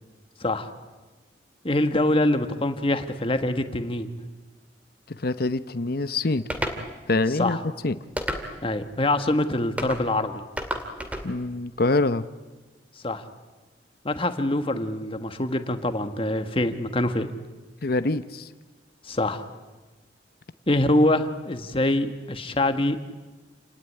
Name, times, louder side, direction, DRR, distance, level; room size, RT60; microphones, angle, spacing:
voice 1, 0.4-0.7 1.6-4.2 7.4-7.6 8.6-10.4 13.0-13.2 14.0-17.3 19.0-19.4 20.7-23.0, left 1 dB, 30° left, 8 dB, 1.5 m, -24 dB
voice 2, 5.1-6.4 7.1-7.6 7.8-7.9 11.2-12.2 17.8-18.5, left 2 dB, 55° left, 12 dB, 0.8 m, -25 dB
sound 1, 6.5-6.8 8.2-8.7 9.8-10.0 10.6-11.3, equal, 10° right, 2.5 m, -30 dB
29.0 x 18.5 x 9.9 m, 1.2 s
head